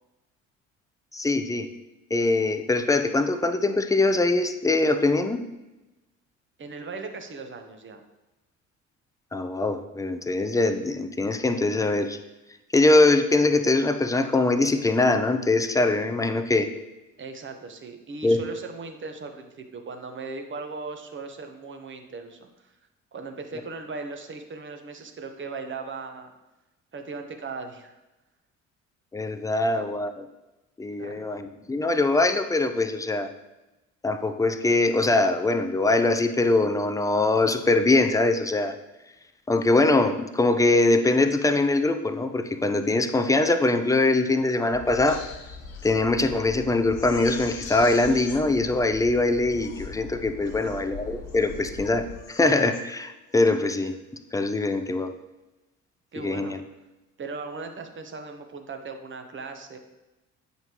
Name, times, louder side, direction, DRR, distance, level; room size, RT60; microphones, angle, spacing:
voice 1, 1.1-1.7 2.1-5.4 9.3-12.2 12.7-16.7 18.2-18.4 29.1-30.3 30.8-33.3 34.0-38.7 39.5-45.2 45.8-53.9 54.3-55.1 56.2-56.6, left 2 dB, 10° left, 8 dB, 0.6 m, -22 dB
voice 2, 6.6-8.0 17.2-22.7 23.1-26.3 26.9-28.0 29.6-29.7 31.0-31.3 50.5-50.7 56.1-56.6 57.2-59.8, right 4 dB, 30° right, 5 dB, 1.1 m, -38 dB
sound 1, 44.7-52.2, left 4 dB, 80° right, 2.7 m, -42 dB
Crying sobbing, 44.9-45.9 46.4-46.5 46.9-48.4 49.1-49.2 49.5-49.9 50.4-50.8 51.2-51.7 52.1-52.8 53.3-53.6, left 6 dB, 80° left, 0.8 m, -44 dB
8.8 x 5.5 x 3.0 m, 1.0 s
figure-of-eight pair, 55°, 40 cm